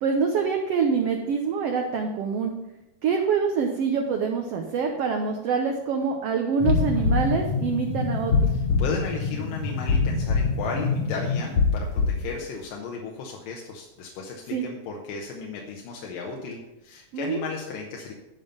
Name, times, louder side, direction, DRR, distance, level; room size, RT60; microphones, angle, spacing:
voice 1, 0.0-2.5 3.0-8.5 14.5-14.6 17.1-17.4, right 5 dB, 85° right, 3 dB, 1.3 m, -25 dB
sound 1, 6.6-12.3, left 4 dB, 60° left, 2.0 m, -24 dB
voice 2, 8.5-18.1, left 4 dB, 85° left, 0 dB, 2.7 m, -35 dB
11.0 x 5.3 x 5.4 m, 0.95 s
omnidirectional pair, 3.8 m